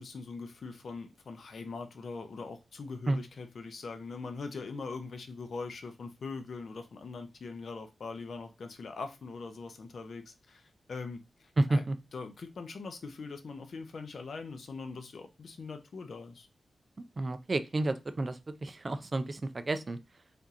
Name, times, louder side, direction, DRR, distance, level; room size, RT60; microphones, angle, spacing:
voice 1, 0.0-11.8 12.1-16.5, left 4 dB, 60° left, 0.6 m, -42 dB
voice 2, 11.6-12.0 17.2-19.4 19.7-20.0, right 2 dB, 30° right, 0.4 m, -30 dB
3.5 x 2.8 x 3.7 m
wide cardioid pair, 155°, 0 cm